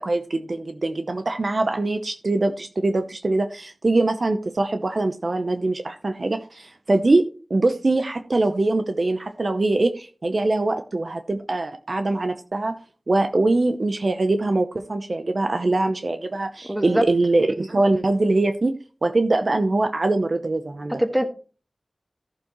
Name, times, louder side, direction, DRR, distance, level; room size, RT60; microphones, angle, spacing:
voice 1, 0.0-7.2 7.5-12.7 13.1-18.7 19.0-21.0, right 2 dB, 60° right, 8 dB, 0.7 m, -23 dB
voice 2, 16.7-17.0 20.9-21.2, equal, 15° right, 5 dB, 1.7 m, -22 dB
14.0 x 7.0 x 3.1 m, 0.37 s
wide cardioid pair, 55°, 0 cm